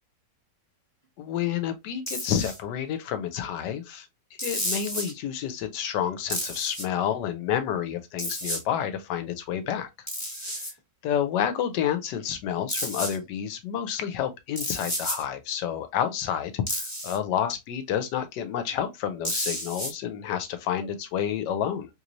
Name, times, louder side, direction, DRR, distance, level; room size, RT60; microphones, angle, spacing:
voice 1, 1.2-4.1 4.4-10.1 10.6-10.7 11.0-21.9, left 9 dB, 85° left, 1.3 m, -29 dB
sound 1, 2.1-2.6 4.4-5.1 6.3-6.8 8.2-8.6 10.1-10.7 12.7-13.2 14.6-15.2 16.7-17.2 19.2-19.9, equal, 15° left, 0.7 m, -31 dB
3.1 x 3.1 x 2.5 m
omnidirectional pair, 1.9 m